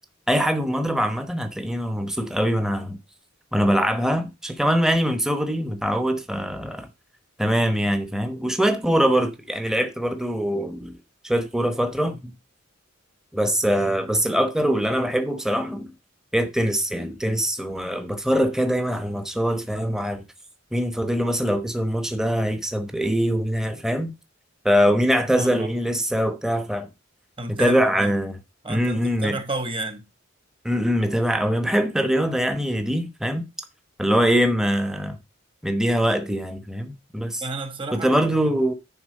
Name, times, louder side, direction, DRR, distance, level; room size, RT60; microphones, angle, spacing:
voice 1, 0.3-3.0 3.5-6.9 7.4-10.9 11.2-12.3 13.3-15.9 16.3-20.2 20.7-24.1 24.6-26.9 27.5-28.4 28.7-29.4 30.6-33.5 34.0-35.2 35.6-37.4 37.9-38.7, equal, 5° right, 1.0 m, -23 dB
voice 2, 25.3-25.7 27.4-28.2 28.6-30.0 37.4-38.5, right 2 dB, 25° right, 1.5 m, -31 dB
10.0 x 4.0 x 6.5 m
head